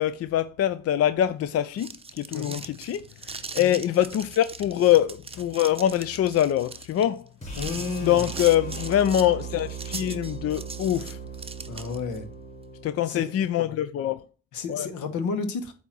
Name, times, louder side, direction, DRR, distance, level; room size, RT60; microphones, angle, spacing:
voice 1, 0.0-7.3 8.0-11.2 12.8-14.2 14.7-14.9, left 11 dB, 55° left, 0.4 m, -24 dB
sound 1, 1.5-12.2, right 4 dB, 20° right, 0.7 m, -40 dB
sound 2, 7.4-13.5, right 5 dB, 20° left, 3.6 m, -38 dB
voice 2, 7.6-8.2 11.7-12.3 13.0-13.3 14.5-15.7, left 5 dB, 80° left, 1.3 m, -31 dB
8.3 x 2.8 x 6.0 m
cardioid pair, 90°, 30 cm